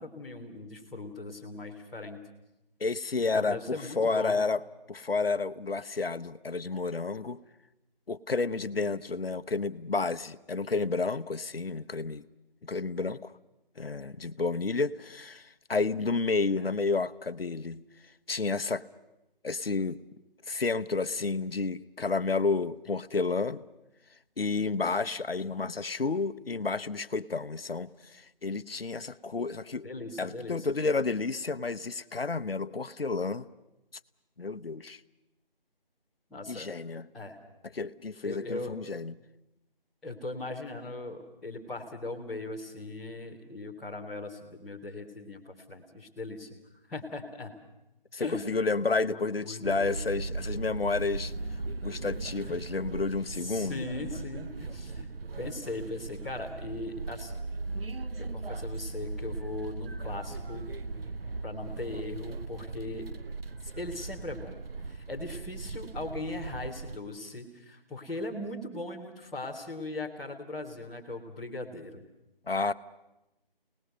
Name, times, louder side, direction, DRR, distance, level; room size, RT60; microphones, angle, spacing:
voice 1, 0.0-2.2 3.2-4.4 29.8-30.7 36.3-36.7 37.1-37.4 38.2-38.7 40.0-46.5 46.9-47.5 48.2-48.6 49.0-50.0 52.5-52.6 53.3-55.1 55.4-57.5 58.2-60.7 61.4-63.1 63.6-64.6 64.8-72.0, left 2 dB, ahead, -12 dB, 1.0 m, -39 dB
voice 2, 2.8-4.6 4.9-7.4 8.1-12.2 12.6-13.3 13.8-17.8 18.3-18.8 19.4-20.0 20.5-23.6 24.4-29.9 30.2-33.5 34.4-35.0 36.5-37.1 37.7-39.1 48.1-51.3 51.8-53.8 72.5-72.7, left 4 dB, 80° left, 14 dB, 0.9 m, -31 dB
sound 1, 49.6-67.0, right 3 dB, 75° right, 0.9 m, -38 dB
28.0 x 19.0 x 6.6 m, 0.92 s
figure-of-eight pair, 160°, 29 cm